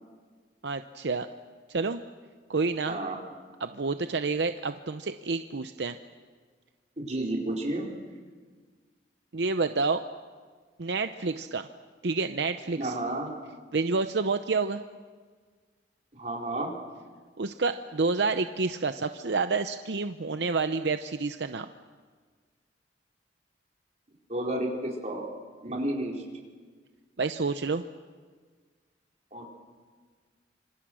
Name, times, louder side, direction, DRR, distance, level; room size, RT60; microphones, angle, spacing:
voice 1, 0.6-1.3 1.7-2.0 2.5-3.0 3.6-6.0 9.3-10.0 10.8-11.7 12.0-12.9 13.7-14.8 17.4-21.7 27.2-27.8, right 4 dB, 75° right, 9 dB, 0.7 m, -29 dB
voice 2, 2.9-3.2 7.0-7.9 12.8-13.3 16.1-16.7 24.3-25.3 25.6-26.2 29.3-29.5, right 1 dB, 40° right, -2 dB, 4.8 m, -31 dB
26.5 x 26.0 x 6.3 m, 1.5 s
head